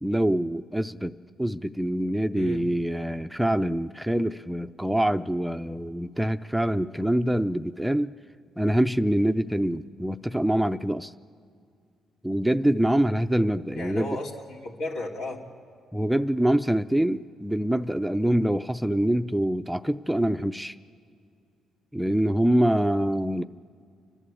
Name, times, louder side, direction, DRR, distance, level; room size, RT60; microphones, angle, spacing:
voice 1, 0.0-8.1 8.6-11.1 12.2-14.2 15.9-20.8 21.9-23.4, right 1 dB, 5° right, 0.5 m, -25 dB
voice 2, 13.7-15.4, left 2 dB, 80° left, 3.0 m, -34 dB
29.5 x 11.0 x 8.5 m
cardioid pair, 90°, 0 cm